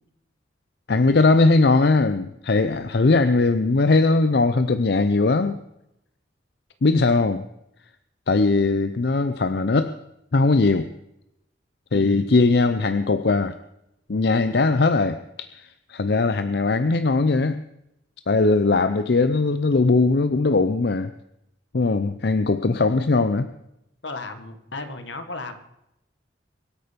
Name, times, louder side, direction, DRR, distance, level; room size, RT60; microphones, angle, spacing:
voice 1, 0.9-5.6 6.8-7.4 8.3-9.9 10.3-10.9 11.9-13.6 14.1-17.6 18.3-21.1 21.7-23.5, left 3 dB, 60° left, 11 dB, 0.6 m, -20 dB
voice 2, 11.9-12.3 24.0-25.6, left 2 dB, 80° left, 8 dB, 1.7 m, -34 dB
23.5 x 8.8 x 5.2 m, 0.83 s
head